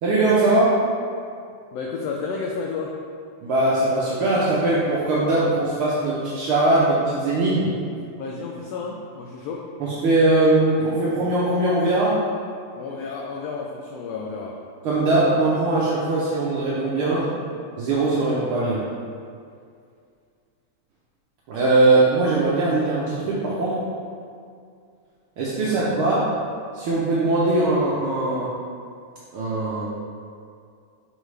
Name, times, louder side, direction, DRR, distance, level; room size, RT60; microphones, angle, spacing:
voice 1, 0.0-0.8 3.4-7.7 9.8-12.2 14.8-17.2 17.8-18.8 21.5-23.8 25.4-26.3 26.7-28.5 29.3-29.9, right 2 dB, 85° right, -7 dB, 1.2 m, -20 dB
voice 2, 1.7-3.0 8.2-9.7 12.8-14.6 17.1-17.3 25.5-25.9, left 4 dB, 85° left, -1 dB, 1.4 m, -32 dB
6.5 x 4.8 x 3.2 m, 2.3 s
omnidirectional pair, 3.3 m